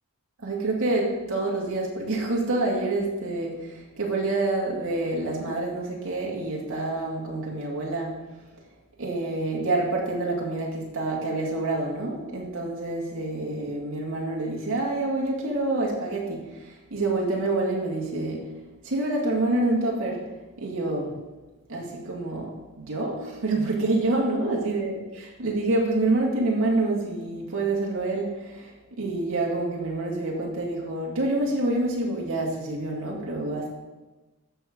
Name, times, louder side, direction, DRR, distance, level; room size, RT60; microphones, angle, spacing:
voice 1, 0.4-8.1 9.0-18.5 18.8-20.2 20.6-21.2 21.7-33.7, right 2 dB, 60° right, -3 dB, 2.3 m, -27 dB
13.5 x 6.2 x 3.9 m, 1.1 s
head